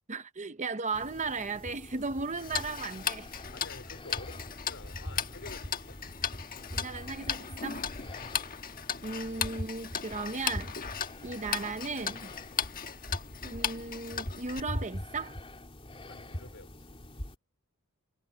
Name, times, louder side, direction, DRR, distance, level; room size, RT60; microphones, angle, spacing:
voice 1, 0.1-3.3 6.7-7.9 9.0-10.7 11.2-12.3 13.4-15.4, right 4 dB, 35° right, 0.8 m, -36 dB
sound 1, 0.9-17.3, equal, 25° left, 3.1 m, -43 dB
Tick-tock, 2.4-14.6, left 7 dB, 40° left, 1.3 m, -37 dB
voice 2, 3.5-6.0 8.0-8.3 16.1-17.0, left 3 dB, 60° left, 3.7 m, -50 dB
head